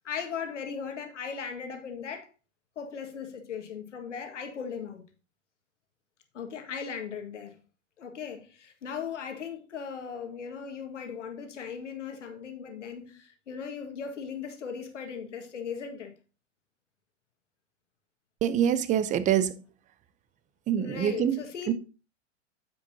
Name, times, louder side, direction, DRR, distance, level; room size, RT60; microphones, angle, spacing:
voice 1, 0.0-2.3 2.8-5.1 6.3-7.6 8.0-16.1 20.8-21.7, left 6 dB, 75° left, 1.9 m, -38 dB
voice 2, 18.4-19.5 20.7-21.4 21.7-21.8, right 9 dB, 20° right, 0.6 m, -25 dB
9.6 x 7.7 x 2.8 m
hypercardioid pair, 110°, 36 cm